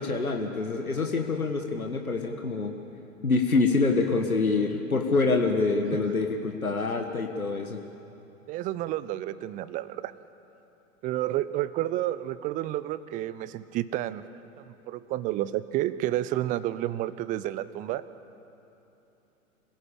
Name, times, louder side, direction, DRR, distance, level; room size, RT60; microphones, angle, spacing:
voice 1, 0.0-2.7 3.2-7.8, left 3 dB, 85° left, 4 dB, 1.5 m, -26 dB
voice 2, 8.5-10.1 11.0-14.2 14.6-18.1, right 14 dB, 20° right, 15 dB, 0.5 m, -30 dB
25.5 x 17.0 x 8.6 m, 3.0 s
figure-of-eight pair, 100°, 42 cm